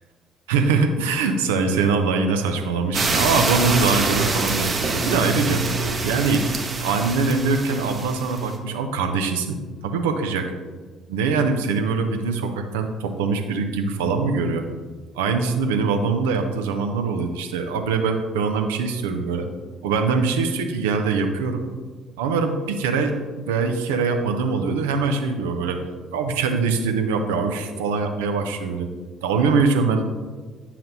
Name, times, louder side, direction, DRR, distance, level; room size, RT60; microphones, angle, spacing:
voice 1, 0.5-9.6 9.8-10.5 11.1-14.7 15.1-19.5 19.8-21.6 22.2-25.8 26.1-28.9 29.2-30.0, right 4 dB, 75° right, 5 dB, 0.5 m, -23 dB
sound 1, 2.9-8.6, right 3 dB, 35° right, 0.9 m, -25 dB
7.6 x 5.7 x 2.8 m, 1.4 s
figure-of-eight pair, 50°, 0 cm